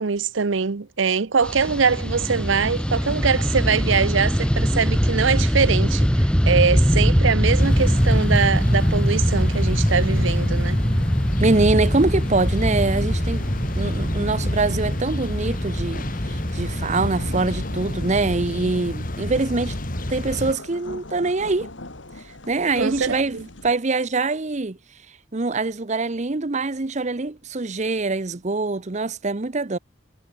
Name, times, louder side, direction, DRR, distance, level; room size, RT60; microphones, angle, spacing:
voice 1, 0.0-10.8 22.8-23.4, right 5 dB, 75° right, 0.7 m, -23 dB
Fixed-wing aircraft airplane, 1.4-18.9, equal, 5° left, 2.5 m, -22 dB
sound 1, 7.6-20.5, left 1 dB, 45° left, 2.6 m, -30 dB
voice 2, 11.4-13.4 13.8-19.8 20.1-21.7 22.5-24.8 25.3-29.8, right 3 dB, 35° right, 0.8 m, -24 dB
sound 2, 17.1-23.7, left 1 dB, 70° left, 3.2 m, -40 dB
head